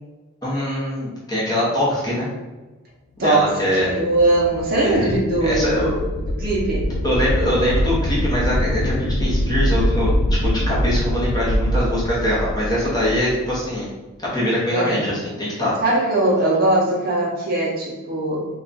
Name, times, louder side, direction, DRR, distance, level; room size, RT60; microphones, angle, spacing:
voice 1, 0.4-2.3 3.2-3.9 4.8-5.2 5.4-5.9 6.9-13.9 14.3-15.7, equal, 20° left, -8 dB, 0.8 m, -23 dB
voice 2, 3.2-6.0 6.4-6.9 14.7-15.0 15.8-18.5, right 2 dB, 40° right, -3 dB, 0.6 m, -20 dB
sound 1, 3.5-13.6, equal, 75° left, 0.4 m, -23 dB
2.3 x 2.3 x 3.8 m, 1.2 s
head